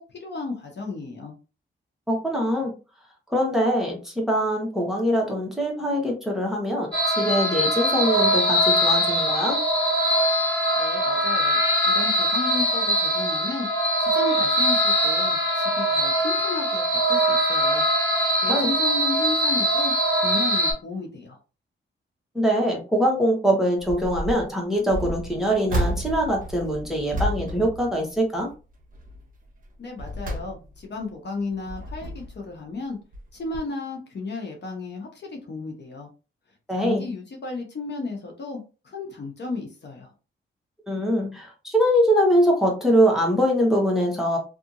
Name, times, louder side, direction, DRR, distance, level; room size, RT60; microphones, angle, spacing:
voice 1, 0.0-1.3 10.8-11.6 11.9-13.7 14.0-17.8 18.4-19.9 20.2-21.4 29.8-33.0 33.3-36.1 36.7-40.1, left 3 dB, 55° left, 1 dB, 0.9 m, -33 dB
voice 2, 2.1-2.7 3.3-6.9 7.2-9.6 18.5-18.7 22.3-28.5 36.7-37.0 40.9-44.4, equal, ahead, -1 dB, 1.0 m, -23 dB
sound 1, 6.9-20.7, equal, 25° left, 1.5 m, -22 dB
sound 2, 23.8-24.4 24.9-28.5 28.9-29.2 29.7-31.0 31.5-32.5 33.1-33.3 33.5-33.6, equal, 40° right, 1.0 m, -31 dB
2.7 x 2.5 x 2.5 m, 0.32 s
cardioid pair, 85°, 21 cm